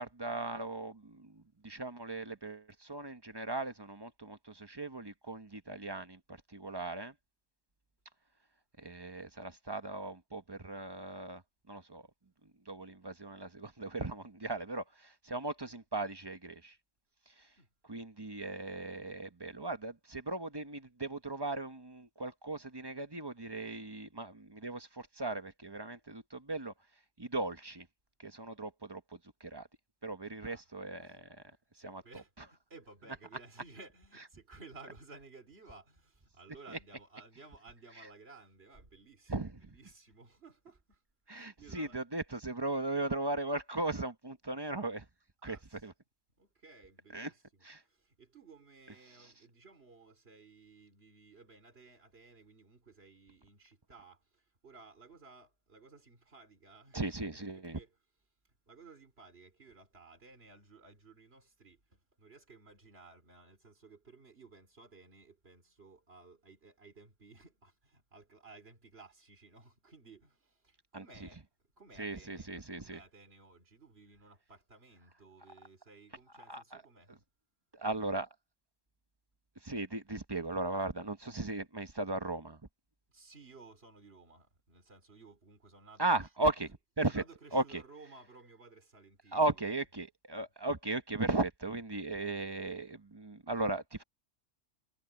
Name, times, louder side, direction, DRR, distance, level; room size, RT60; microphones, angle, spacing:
voice 1, 0.0-7.1 8.8-11.4 11.7-12.0 12.7-16.7 17.9-26.7 27.2-27.9 28.2-29.0 29.4-29.7 30.0-31.1 31.8-32.0 39.3-39.8 41.3-45.1 45.4-45.6 45.8-45.9 47.1-47.3 47.7-47.8 56.9-57.8 70.9-71.3 72.0-73.0 76.5-76.8 77.1-77.2 77.7-78.3 79.6-82.6 86.0-86.7 87.0-87.2 87.5-87.8 89.3-94.0, right 2 dB, 20° right, 1.0 m, -37 dB
voice 2, 31.7-42.0 45.4-45.9 46.4-57.9 58.5-77.2 83.1-86.1 87.1-89.6, right 3 dB, 55° right, 3.2 m, -57 dB
omnidirectional pair, 1.2 m